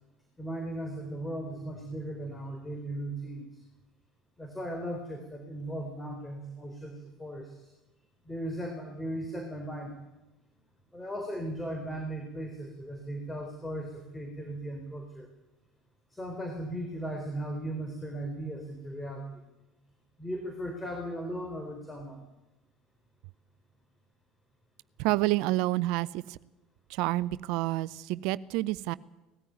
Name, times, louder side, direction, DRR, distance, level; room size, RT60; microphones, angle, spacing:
voice 1, 0.4-3.6 4.4-7.7 8.2-10.0 10.9-15.3 16.1-19.4 20.2-22.3, right 1 dB, 10° left, 4 dB, 4.2 m, -37 dB
voice 2, 25.0-26.4 26.9-28.9, right 18 dB, 65° right, 20 dB, 0.6 m, -29 dB
19.0 x 14.5 x 9.4 m, 1.0 s
hypercardioid pair, 65°, 0 cm